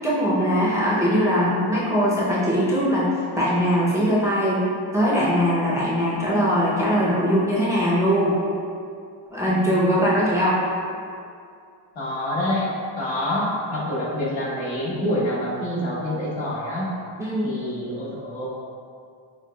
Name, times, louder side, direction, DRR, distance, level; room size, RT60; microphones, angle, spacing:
voice 1, 0.0-3.1 3.4-4.6 4.9-8.4 9.3-10.6 17.2-17.5, equal, 5° right, -7 dB, 0.5 m, -21 dB
voice 2, 9.5-9.9 11.9-12.7 13.0-16.9 17.4-18.5, left 1 dB, 70° left, -7 dB, 1.3 m, -27 dB
6.0 x 2.2 x 2.2 m, 2.3 s
cardioid pair, 105°, 48 cm